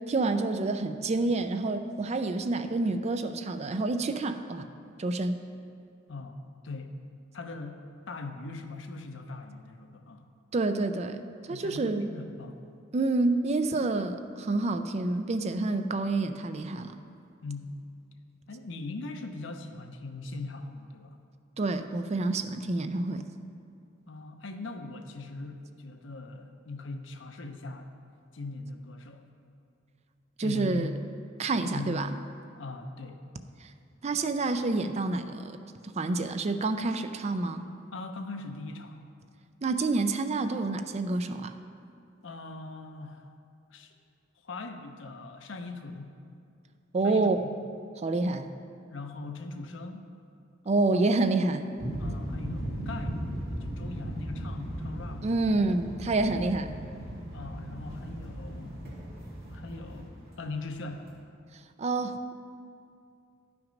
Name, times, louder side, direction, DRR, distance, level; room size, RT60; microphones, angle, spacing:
voice 1, 0.1-4.7 5.0-5.4 10.5-12.1 12.9-16.9 21.6-23.2 30.4-30.9 31.4-32.1 34.0-35.6 36.0-37.6 39.6-41.6 46.9-47.4 48.0-48.5 50.7-51.6 55.2-56.7 61.8-62.4, right 3 dB, 35° right, 9 dB, 0.4 m, -28 dB
voice 2, 6.1-7.0 7.3-10.3 11.5-12.6 17.4-17.8 18.5-21.2 24.1-27.9 28.3-29.3 30.4-31.0 31.6-32.1 32.6-33.2 34.1-34.2 37.9-39.0 42.2-43.3 43.7-43.9 44.4-46.2 47.0-47.5 48.3-48.5 48.9-50.1 52.0-53.2 53.5-55.3 57.3-58.8 59.5-61.1, left 3 dB, 75° left, 6 dB, 0.8 m, -40 dB
sound 1, 51.8-61.1, equal, 55° right, 2.3 m, -37 dB
11.5 x 5.9 x 5.2 m, 2.5 s
head